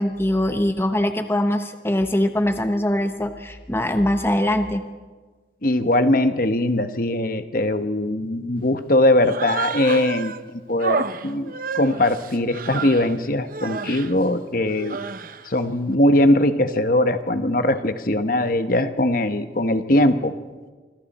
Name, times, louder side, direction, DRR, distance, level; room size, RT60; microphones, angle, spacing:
voice 1, 0.0-4.8, left 1 dB, 15° left, 7 dB, 1.0 m, -22 dB
voice 2, 5.6-15.0 15.4-20.3, left 1 dB, 50° left, 9 dB, 1.2 m, -21 dB
Human voice, 9.2-10.4 10.8-13.1 13.5-14.1 14.7-15.5, right 4 dB, 50° right, 0.8 m, -30 dB
27.0 x 25.5 x 4.3 m, 1.4 s
head